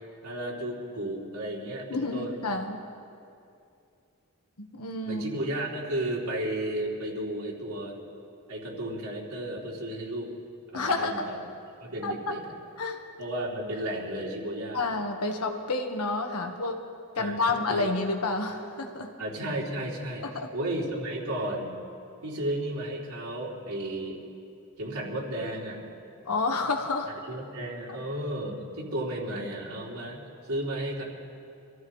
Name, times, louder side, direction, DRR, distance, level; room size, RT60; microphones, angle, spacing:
voice 1, 0.2-2.5 5.0-8.0 8.5-10.4 10.7-11.4 11.8-12.6 13.2-14.9 17.2-17.8 19.2-21.7 22.2-24.2 24.8-25.8 27.1-30.2 30.5-31.0, right 1 dB, 80° right, -3 dB, 3.1 m, -33 dB
voice 2, 1.9-2.8 4.6-5.2 10.7-11.3 12.0-12.1 12.8-13.0 14.7-16.8 17.2-19.1 20.2-20.5 26.3-27.1, left 3 dB, 90° left, 4 dB, 1.4 m, -29 dB
26.5 x 14.5 x 3.2 m, 2.5 s
head